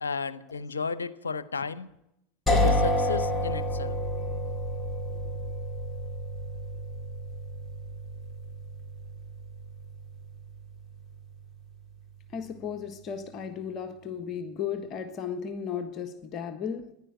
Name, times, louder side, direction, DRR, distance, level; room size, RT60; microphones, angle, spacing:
voice 1, 0.0-1.9 2.5-4.0, left 5 dB, 85° left, 0.7 m, -33 dB
sound 1, 2.5-12.2, equal, 10° left, 4.8 m, -31 dB
voice 2, 12.3-16.9, left 7 dB, 40° left, 1.3 m, -35 dB
14.5 x 10.5 x 9.1 m
hypercardioid pair, 85°, 0 cm